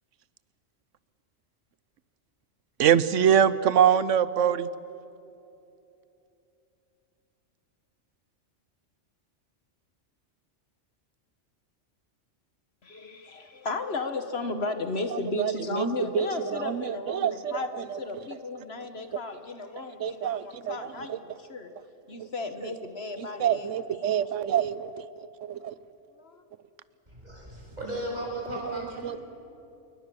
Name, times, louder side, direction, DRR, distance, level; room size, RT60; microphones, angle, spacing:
voice 1, 2.8-4.7 15.1-15.9 16.1-18.0 19.8-21.2 23.2-24.9 25.4-25.8 28.6-29.2, right 9 dB, 85° right, 16 dB, 1.1 m, -25 dB
voice 2, 12.8-21.7 22.1-23.7 24.0-24.1 26.2-26.4, left 3 dB, 55° left, 8 dB, 1.5 m, -34 dB
voice 3, 27.1-29.2, right 1 dB, 35° right, -3 dB, 7.0 m, -36 dB
27.5 x 22.0 x 6.9 m, 2.8 s
omnidirectional pair, 1.3 m